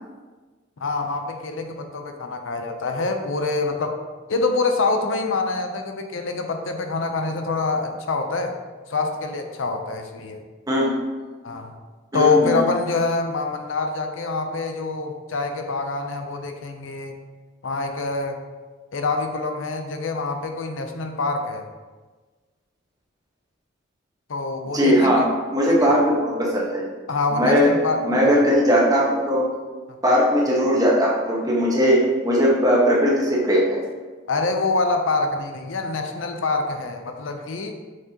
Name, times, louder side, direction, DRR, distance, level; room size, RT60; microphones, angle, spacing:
voice 1, 0.8-4.0 4.3-8.5 8.9-10.4 11.4-11.7 12.1-17.2 17.6-18.4 18.9-21.6 24.3-25.1 25.7-26.0 27.1-28.4 34.3-37.8, left 3 dB, 75° left, 5 dB, 0.6 m, -25 dB
voice 2, 12.1-12.6 24.7-25.2 25.5-26.8 27.3-27.7 28.0-29.4 30.0-33.8, equal, 20° right, -4 dB, 1.2 m, -19 dB
6.2 x 5.9 x 2.9 m, 1.3 s
head